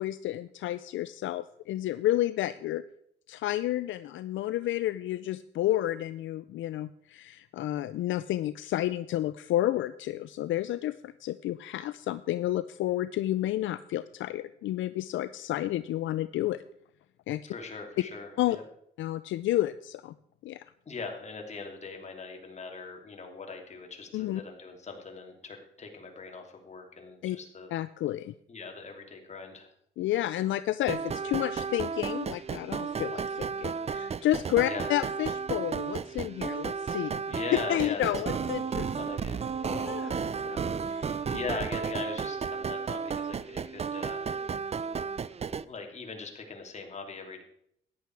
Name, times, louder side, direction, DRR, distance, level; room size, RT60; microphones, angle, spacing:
voice 1, 0.0-2.8 3.3-16.6 17.3-17.4 18.4-18.6 19.0-20.1 20.4-20.7 24.1-24.4 27.2-27.4 27.7-28.3 30.0-37.2 37.7-38.9 39.6-41.2, left 14 dB, 75° left, 14 dB, 0.5 m, -31 dB
voice 2, 17.4-18.6 20.9-27.7 28.5-29.7 34.6-34.9 37.2-38.4 39.0-39.4 41.3-44.3 45.7-47.4, left 4 dB, 35° left, 2 dB, 2.9 m, -40 dB
sound 1, 30.9-45.6, right 6 dB, 30° right, 0.5 m, -33 dB
14.0 x 10.0 x 4.7 m, 0.72 s
cardioid pair, 90°, 20 cm